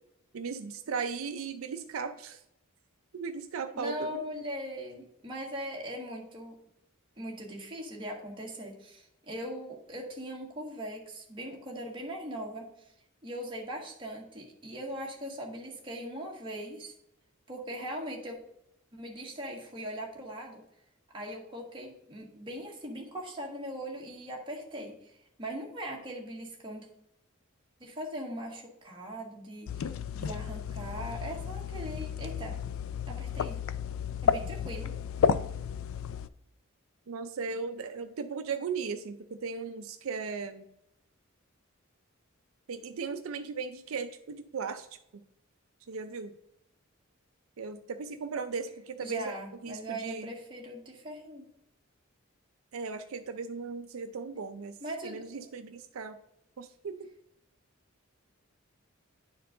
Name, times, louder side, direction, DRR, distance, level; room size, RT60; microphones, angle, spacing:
voice 1, 0.3-2.4 3.1-4.3 37.1-40.7 42.7-44.9 45.9-46.3 47.6-49.3 49.6-50.3 52.7-54.8 55.0-56.2 56.6-57.1, right 5 dB, 80° right, 8 dB, 0.5 m, -37 dB
voice 2, 3.7-6.5 7.2-12.9 13.2-16.9 17.5-18.4 18.9-20.6 21.1-26.9 27.8-32.6 33.1-33.6 34.2-34.9 49.0-51.5 54.8-55.2, equal, 25° right, -2 dB, 1.7 m, -40 dB
sound 1, 29.7-36.3, left 7 dB, 70° left, 0.3 m, -32 dB
10.0 x 4.5 x 3.8 m, 0.77 s
head